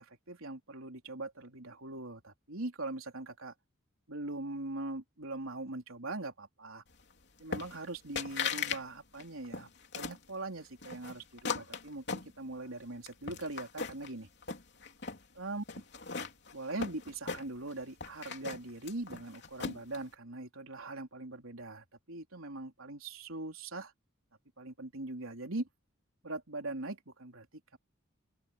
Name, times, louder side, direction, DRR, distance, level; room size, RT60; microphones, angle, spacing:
voice 1, 0.0-3.5 4.1-6.8 7.4-9.7 9.9-14.3 15.4-15.6 16.5-23.9 24.6-25.7 26.2-27.5, right 2 dB, 85° right, 3.4 m, -41 dB
sound 1, 7.5-7.9 8.2-8.8 9.1-10.2 10.8-12.7 13.1-14.1 14.4-15.2 15.7-17.7 18.0-20.0, left 5 dB, 55° left, 3.3 m, -38 dB
open air
head